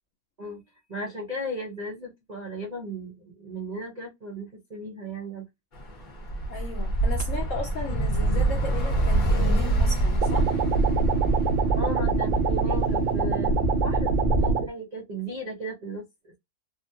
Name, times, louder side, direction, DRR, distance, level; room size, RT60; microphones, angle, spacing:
voice 1, 0.9-5.5 11.8-16.4, equal, 45° right, 0.5 m, -36 dB
Bus / Traffic noise roadway noise, 5.7-14.5, right 2 dB, 35° left, 1.0 m, -26 dB
voice 2, 6.5-10.6, left 4 dB, 70° left, 0.7 m, -35 dB
sound 1, 10.2-14.7, right 4 dB, 90° right, 1.5 m, -25 dB
3.3 x 2.2 x 2.7 m
omnidirectional pair, 1.9 m